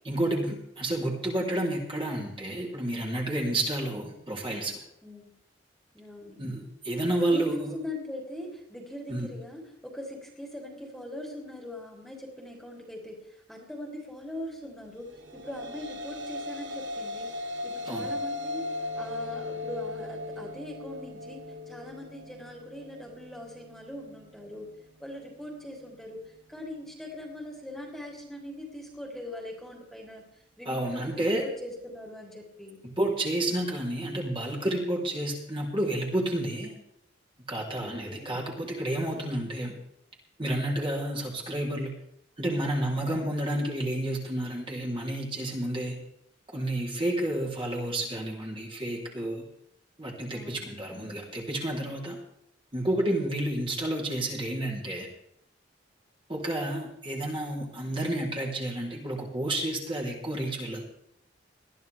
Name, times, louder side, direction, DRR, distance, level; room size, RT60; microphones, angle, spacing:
voice 1, 0.0-4.8 6.4-7.8 9.1-9.3 17.9-18.1 30.7-31.4 32.8-36.8 37.5-39.7 40.4-41.9 42.4-46.0 46.5-49.5 50.0-52.2 52.7-55.1 56.3-60.8, right 1 dB, 25° right, -2 dB, 3.6 m, -30 dB
voice 2, 5.0-5.3 5.9-6.4 7.3-24.7 25.0-32.8 37.8-38.3 50.3-50.9, left 1 dB, ahead, -1 dB, 3.4 m, -41 dB
sound 1, 15.1-23.7, left 2 dB, 70° right, 1.4 m, -37 dB
21.0 x 13.5 x 3.5 m, 0.77 s
head